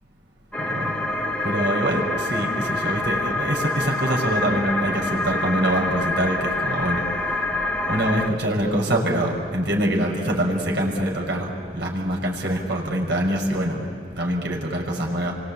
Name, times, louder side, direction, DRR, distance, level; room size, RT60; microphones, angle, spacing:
sound 1, 0.5-8.3, left 2 dB, 5° left, 1.2 m, -26 dB
voice 1, 0.6-1.0 1.4-7.0 7.9-15.3, right 1 dB, 65° right, -1 dB, 5.4 m, -24 dB
28.5 x 24.0 x 8.5 m, 2.6 s
head